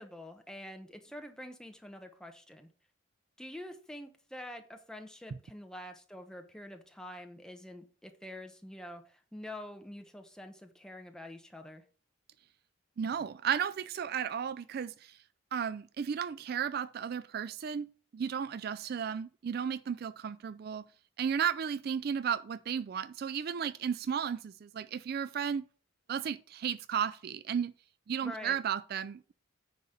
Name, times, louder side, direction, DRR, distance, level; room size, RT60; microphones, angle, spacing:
voice 1, 0.0-2.7 3.4-11.8 28.2-28.6, left 1 dB, 5° left, 0.9 m, -46 dB
voice 2, 13.0-15.2 15.5-17.9 18.1-20.8 21.2-25.6 26.1-27.7 28.1-29.3, right 7 dB, 50° right, 0.3 m, -34 dB
9.5 x 4.1 x 6.5 m
head